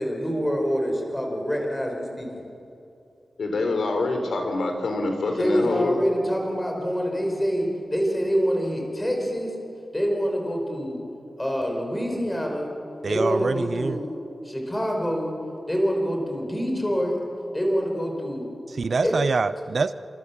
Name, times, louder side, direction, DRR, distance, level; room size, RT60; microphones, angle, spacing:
voice 1, 0.0-2.3 5.4-9.5 9.9-11.0 11.4-12.7 13.1-14.1 14.4-15.3 15.7-17.2 17.5-18.5 19.0-19.1, equal, 10° left, 1 dB, 5.3 m, -26 dB
voice 2, 3.4-6.0, left 2 dB, 75° left, 4 dB, 4.1 m, -25 dB
voice 3, 13.0-14.0 18.7-19.9, right 4 dB, 45° right, 13 dB, 0.6 m, -25 dB
29.5 x 26.5 x 7.3 m, 2.7 s
wide cardioid pair, 165°, 0 cm